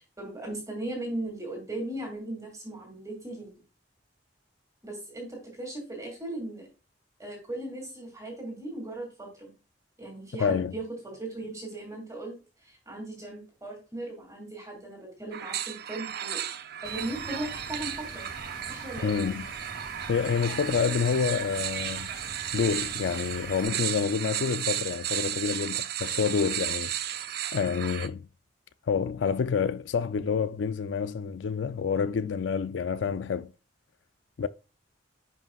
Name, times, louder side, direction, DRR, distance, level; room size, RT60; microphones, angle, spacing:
voice 1, 0.2-3.5 4.8-6.7 7.2-9.5 10.0-12.4 12.6-16.4 16.8-18.3 18.7-19.2, right 1 dB, 20° right, 2.5 m, -37 dB
voice 2, 10.4-10.7 19.0-19.5 20.1-22.1 22.5-26.9 27.5-28.3 28.9-33.5 34.4-34.5, left 6 dB, 80° left, 0.4 m, -28 dB
sound 1, 15.3-28.1, right 10 dB, 60° right, 0.6 m, -34 dB
Water, 16.8-23.6, left 1 dB, 55° left, 3.2 m, -46 dB
11.0 x 5.4 x 2.4 m
head